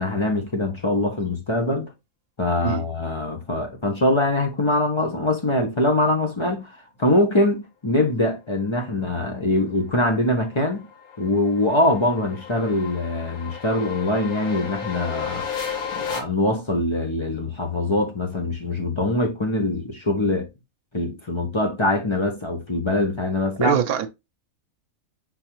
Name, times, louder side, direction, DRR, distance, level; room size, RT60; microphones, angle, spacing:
voice 1, 0.0-1.9 2.4-6.7 7.0-10.9 11.2-15.5 16.0-20.5 20.9-23.8, left 2 dB, 35° left, 0.5 m, -23 dB
sound 1, 9.6-16.2, left 7 dB, 90° left, 1.6 m, -34 dB
voice 2, 23.6-24.1, right 9 dB, 85° right, 1.1 m, -23 dB
4.6 x 3.8 x 2.9 m
omnidirectional pair, 1.5 m